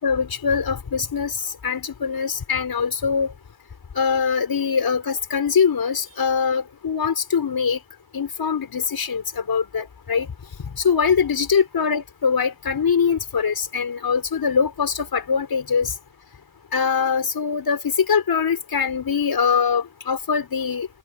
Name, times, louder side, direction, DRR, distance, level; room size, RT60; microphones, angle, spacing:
voice 1, 0.0-1.3 1.6-3.3 4.0-7.8 8.1-10.3 10.8-15.9 16.7-20.9, left 6 dB, 55° left, 6.2 m, -22 dB
wide cardioid pair, 100°, 42 cm